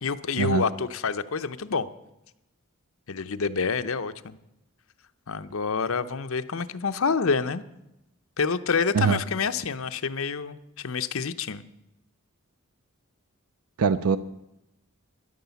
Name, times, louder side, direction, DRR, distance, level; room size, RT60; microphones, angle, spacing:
voice 1, 0.0-1.9 3.1-4.4 5.3-7.6 8.4-11.6, left 5 dB, 70° left, 11 dB, 0.7 m, -27 dB
voice 2, 13.8-14.2, right 6 dB, 85° right, 13 dB, 0.5 m, -22 dB
13.0 x 10.5 x 7.0 m, 0.89 s
head